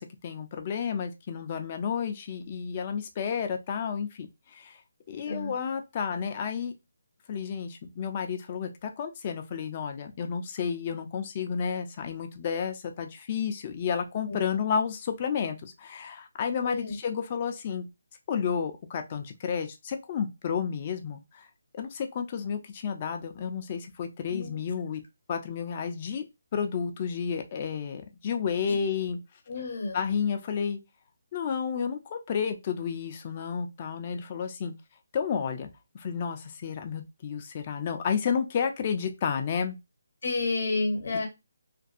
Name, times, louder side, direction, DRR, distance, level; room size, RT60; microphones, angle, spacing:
voice 1, 0.0-4.8 5.1-6.7 7.3-17.9 18.3-21.5 21.7-25.0 25.3-26.2 26.5-29.2 29.9-30.8 31.3-34.7 35.1-35.7 35.9-39.8, left 7 dB, 30° left, 0.4 m, -31 dB
voice 2, 16.6-17.0 24.3-24.6 29.5-30.0 40.2-41.3, left 3 dB, 55° left, 0.9 m, -30 dB
2.5 x 2.3 x 2.4 m
hypercardioid pair, 160°, 0 cm